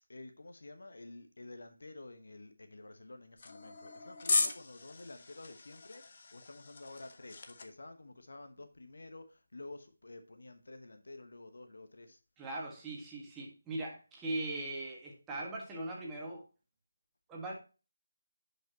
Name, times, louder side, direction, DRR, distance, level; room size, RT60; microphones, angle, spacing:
voice 1, 0.1-12.2, left 2 dB, 65° left, 7 dB, 1.1 m, -50 dB
sound 1, 3.4-7.7, left 4 dB, 45° left, 0.8 m, -37 dB
voice 2, 12.4-16.4 17.3-17.5, right 2 dB, 10° right, -3 dB, 1.7 m, -40 dB
10.5 x 5.3 x 2.9 m, 0.32 s
figure-of-eight pair, 155°, 0 cm